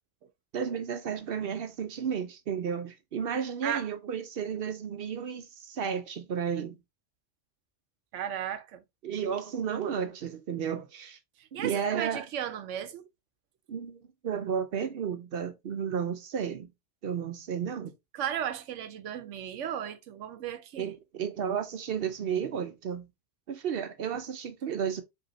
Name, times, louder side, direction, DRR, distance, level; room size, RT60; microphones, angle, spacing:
voice 1, 0.5-6.8 9.0-11.2 11.5-12.3 13.7-16.7 17.0-17.9 20.8-23.1 23.5-25.0, right 7 dB, 60° right, 0.7 m, -33 dB
voice 2, 8.1-8.8 11.5-13.1 18.1-20.9, right 10 dB, 85° right, 1.0 m, -35 dB
5.0 x 2.8 x 2.9 m
omnidirectional pair, 1.2 m